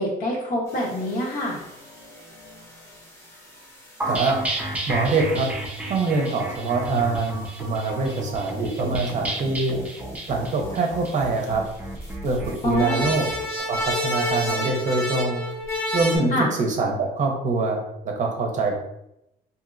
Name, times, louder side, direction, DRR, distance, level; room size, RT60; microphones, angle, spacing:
voice 1, 0.0-1.6 12.6-13.0 16.3-16.5, left 1 dB, 55° left, -3 dB, 1.0 m, -25 dB
sound 1, 0.7-8.9 9.3-9.6 9.8-9.9 10.2-10.5 10.9-16.2, left 1 dB, 15° left, 0.9 m, -32 dB
sound 2, 4.0-13.5, right 1 dB, 10° right, 0.4 m, -32 dB
voice 2, 4.9-5.5 5.9-9.8 10.3-11.6 12.2-13.3 13.7-15.4 15.9-16.3 16.6-17.8 18.0-18.7, right 3 dB, 45° right, 2 dB, 0.7 m, -24 dB
2.9 x 2.7 x 2.5 m, 0.83 s
cardioid pair, 110°, 17 cm